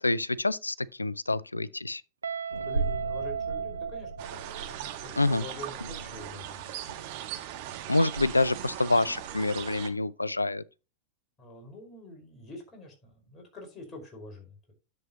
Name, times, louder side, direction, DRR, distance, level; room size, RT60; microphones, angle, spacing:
voice 1, 0.0-2.0 5.2-5.4 7.9-10.6, left 2 dB, 80° left, 0.4 m, -27 dB
Guitar, 2.2-5.1, right 7 dB, 75° right, 0.3 m, -35 dB
sound 1, 2.5-9.3, right 3 dB, 90° right, 0.8 m, -39 dB
voice 2, 2.6-6.7 11.4-14.7, left 2 dB, 20° left, 5.1 m, -46 dB
sound 2, 4.2-9.9, right 12 dB, 50° right, 1.4 m, -39 dB
10.5 x 7.5 x 3.0 m
figure-of-eight pair, 90°, 0 cm